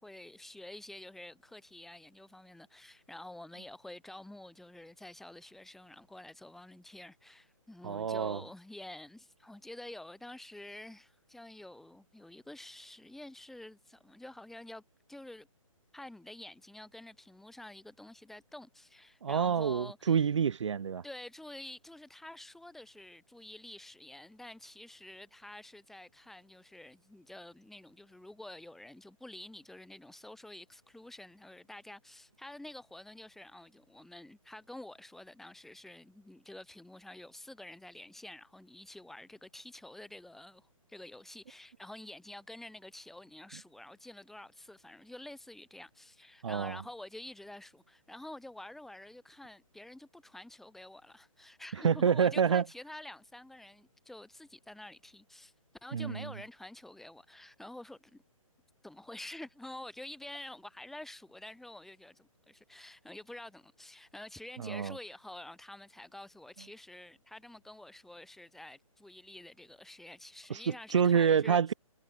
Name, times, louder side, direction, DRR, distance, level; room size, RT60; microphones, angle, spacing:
voice 1, 0.0-14.8 15.1-15.5 15.9-20.3 21.0-55.5 55.8-58.2 58.8-71.6, left 1 dB, ahead, 4.6 m, -49 dB
voice 2, 7.8-8.4 19.2-21.0 46.4-46.8 51.8-52.6 55.9-56.3 64.6-64.9 70.5-71.7, right 7 dB, 55° right, 2.9 m, -27 dB
hypercardioid pair, 160°, 18 cm